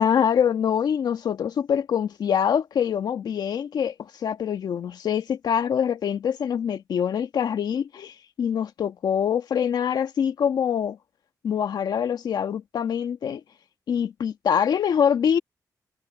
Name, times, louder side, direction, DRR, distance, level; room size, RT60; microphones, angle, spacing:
voice 1, 0.0-11.0 11.4-13.4 13.9-15.4, left 8 dB, 80° left, 1.8 m, -24 dB
cardioid pair, 90°, 7 cm